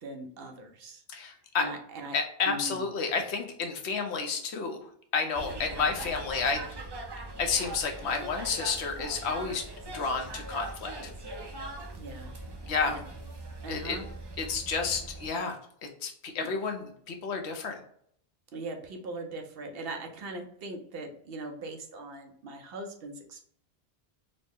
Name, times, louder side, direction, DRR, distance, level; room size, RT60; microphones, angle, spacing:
voice 1, 0.0-1.0 1.6-2.2 2.5-2.8 12.0-12.3 12.8-13.1 13.6-14.0 18.5-23.4, right 2 dB, 65° right, 4 dB, 0.8 m, -40 dB
voice 2, 1.1-1.6 2.1-4.8 5.1-6.6 7.4-9.7 9.9-11.1 12.7-13.0 13.7-14.0 14.4-15.6 16.0-17.8, left 5 dB, 80° left, 4 dB, 1.0 m, -30 dB
sound 1, 5.3-15.3, right 2 dB, 35° right, 0.4 m, -41 dB
4.0 x 2.0 x 3.5 m, 0.64 s
omnidirectional pair, 1.1 m